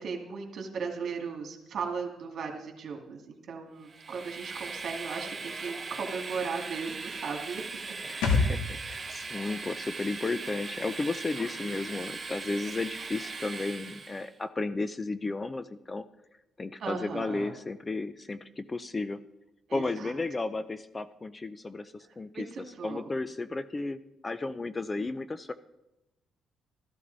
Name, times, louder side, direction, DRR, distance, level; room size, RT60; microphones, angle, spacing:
voice 1, 0.0-7.7 11.6-12.0 16.8-17.5 19.7-20.1 22.3-23.1, right 5 dB, 60° right, 3 dB, 2.3 m, -37 dB
Train, 3.9-14.3, right 4 dB, 35° right, 1.2 m, -39 dB
voice 2, 8.0-16.1 16.6-19.2 19.7-22.5 22.8-25.5, left 3 dB, 25° left, 13 dB, 0.6 m, -34 dB
sound 1, 8.2-11.7 12.0-12.1, left 3 dB, 85° left, 2.1 m, -32 dB
13.5 x 12.5 x 4.1 m, 0.93 s
cardioid pair, 90°, 0 cm